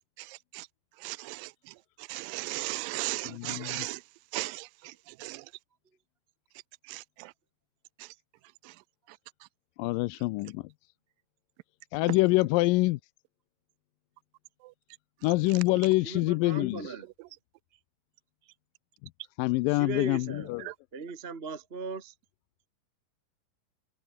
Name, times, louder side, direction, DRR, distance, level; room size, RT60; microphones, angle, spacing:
voice 1, 1.0-1.5 2.1-4.0 4.3-4.7 5.2-5.4 6.9-7.0, right 22 dB, 85° right, 2.3 m, -35 dB
voice 2, 3.3-3.9 9.8-10.6 11.9-13.0 15.2-16.9 19.4-20.6, left 21 dB, 85° left, 2.3 m, -26 dB
voice 3, 16.0-17.1 18.4-18.5 19.7-20.5 20.9-22.1, right 4 dB, 30° right, 1.1 m, -38 dB
omnidirectional pair, 3.9 m